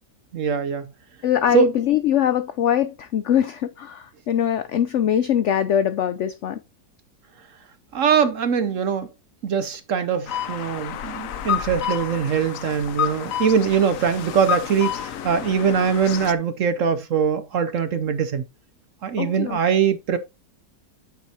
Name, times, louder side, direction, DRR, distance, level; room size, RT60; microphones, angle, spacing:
voice 1, 0.3-0.9 1.5-1.7 7.9-9.1 9.4-18.4 19.0-20.2, right 7 dB, 60° right, 0.9 m, -22 dB
voice 2, 1.2-6.6 19.2-19.6, left 10 dB, 80° left, 0.6 m, -22 dB
sound 1, 10.3-16.3, left 9 dB, 60° left, 0.9 m, -29 dB
8.8 x 7.3 x 2.8 m
omnidirectional pair, 1.9 m